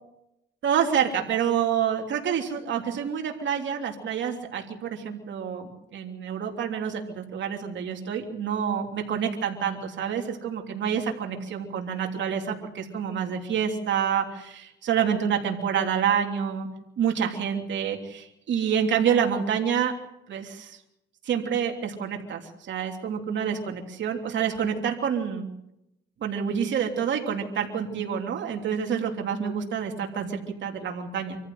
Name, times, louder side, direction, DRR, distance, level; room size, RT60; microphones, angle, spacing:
voice 1, 0.6-16.7 17.0-19.9 20.3-20.8 21.2-25.5 26.2-31.4, right 8 dB, 65° right, 2 dB, 3.2 m, -28 dB
25.5 x 14.5 x 7.7 m, 0.84 s
cardioid pair, 90°, 20 cm